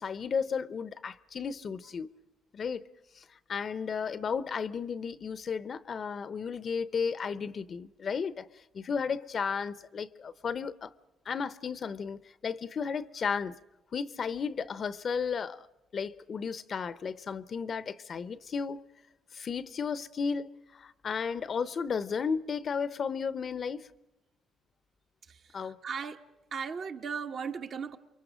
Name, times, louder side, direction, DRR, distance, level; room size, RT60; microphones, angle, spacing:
voice 1, 0.0-2.1 2.5-2.8 3.2-10.9 11.3-13.6 13.9-15.7 15.9-18.8 19.3-23.9 25.5-25.8, left 6 dB, 50° left, 0.8 m, -34 dB
voice 2, 25.8-26.2 26.5-28.0, right 6 dB, 55° right, 1.4 m, -36 dB
28.5 x 23.5 x 5.1 m
cardioid pair, 90°, 0 cm